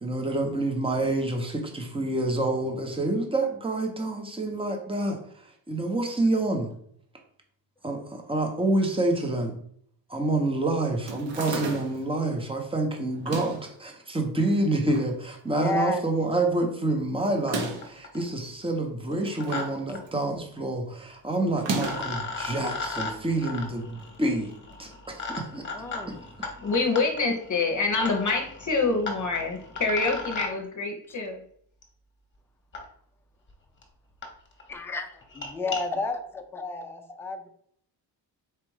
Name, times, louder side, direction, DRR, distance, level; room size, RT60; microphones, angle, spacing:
voice 1, 0.0-6.7 7.8-9.5 10.1-24.5 24.8-25.6 26.4-26.5, right 2 dB, 10° right, 2 dB, 0.9 m, -28 dB
sound 1, 11.1-12.1 13.1-13.7 14.5-15.1 15.5-15.6 15.8-15.9 17.3-18.0 19.0-19.8 20.1-20.4 21.5-22.2, right 3 dB, 75° right, 1.2 m, -33 dB
voice 2, 15.5-16.0 25.7-26.2 31.1-31.2 34.7-35.1 35.4-37.5, left 3 dB, 5° left, 5 dB, 0.4 m, -31 dB
sound 2, 17.5-17.6 17.8-18.3 19.1-19.6 19.9-20.0 21.3-21.4 21.8-30.5 31.8-31.9 32.7-32.8 33.5-33.6 33.8-33.9 34.2-34.3 34.6-34.8 35.2-35.8, left 3 dB, 25° left, 1.1 m, -36 dB
voice 3, 26.6-31.4, left 3 dB, 45° left, 3 dB, 0.8 m, -26 dB
4.5 x 2.5 x 4.8 m, 0.63 s
cardioid pair, 125°, 43 cm